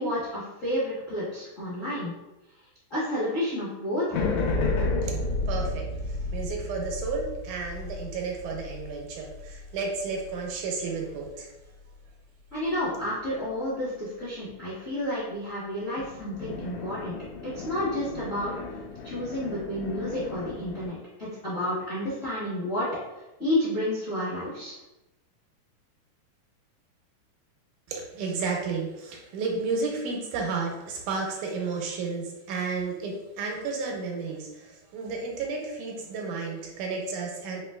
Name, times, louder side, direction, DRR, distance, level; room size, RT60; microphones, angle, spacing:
voice 1, 0.0-2.1 2.9-4.2 12.5-18.5 19.0-22.9 23.4-24.8, left 1 dB, 55° left, -11 dB, 0.8 m, -30 dB
sound 1, 4.1-10.6 16.0-20.9, left 3 dB, 80° left, 1.7 m, -32 dB
voice 2, 5.5-11.5 27.9-37.6, right 4 dB, 80° right, 0 dB, 2.0 m, -32 dB
5.0 x 3.0 x 2.2 m, 1.0 s
omnidirectional pair, 3.6 m